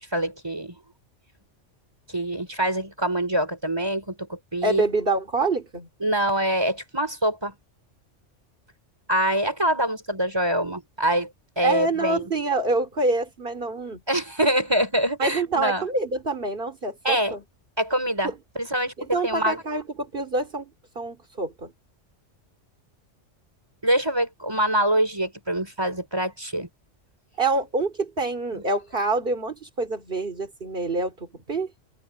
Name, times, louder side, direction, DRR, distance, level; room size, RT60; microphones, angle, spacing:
voice 1, 0.1-0.8 2.1-4.8 6.0-7.5 9.1-11.3 11.6-12.3 14.1-15.8 17.0-17.4 17.8-19.6 23.8-26.7 28.5-28.6, right 1 dB, 20° right, 4.3 m, -25 dB
voice 2, 4.6-5.9 11.6-14.0 15.2-17.4 19.1-20.7 20.9-21.7 27.4-31.7, right 2 dB, 45° right, 3.2 m, -26 dB
omnidirectional pair, 1.3 m